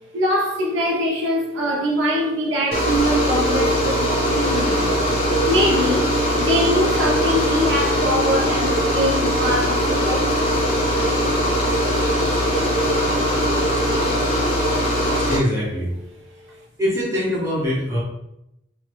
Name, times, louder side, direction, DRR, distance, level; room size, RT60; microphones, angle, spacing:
voice 1, 0.1-4.8 5.4-6.1 6.4-10.5, left 1 dB, 75° right, -2 dB, 0.6 m, -23 dB
sound 1, 2.7-15.4, equal, 30° left, 0.6 m, -20 dB
voice 2, 15.3-15.9 16.8-18.0, equal, 15° right, -8 dB, 1.2 m, -22 dB
3.0 x 2.3 x 3.3 m, 0.83 s
head